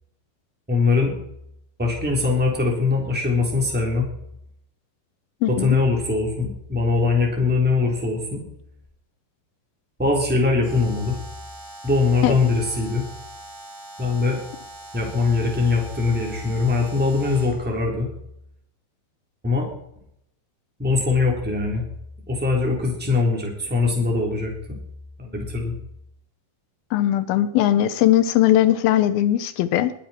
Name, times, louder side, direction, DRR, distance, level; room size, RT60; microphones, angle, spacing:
voice 1, 0.7-1.1 1.8-4.0 5.5-8.4 10.0-11.1 11.8-13.0 14.0-14.4 14.9-18.1 19.4-19.7 20.8-21.8 22.3-24.8 25.2-25.7, left 4 dB, 5° right, 0 dB, 3.1 m, -22 dB
voice 2, 5.4-5.8 12.2-12.4 26.9-29.9, left 12 dB, 80° left, 13 dB, 2.5 m, -19 dB
Alarm, 10.6-17.7, right 1 dB, 25° right, 8.3 m, -41 dB
20.5 x 10.0 x 4.4 m, 0.73 s
omnidirectional pair, 4.5 m